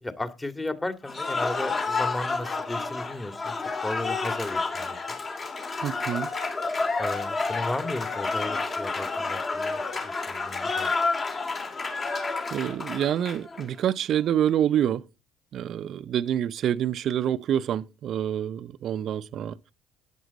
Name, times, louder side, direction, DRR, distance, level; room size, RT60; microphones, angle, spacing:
voice 1, 0.0-5.2 7.0-10.9, left 2 dB, 15° left, 2.0 m, -35 dB
Cheering / Applause, 1.1-13.7, left 3 dB, 35° left, 3.1 m, -30 dB
voice 2, 5.8-6.3 11.9-15.0 15.5-19.7, right 10 dB, 55° right, 0.6 m, -27 dB
13.5 x 10.0 x 4.1 m
hypercardioid pair, 55°, 0 cm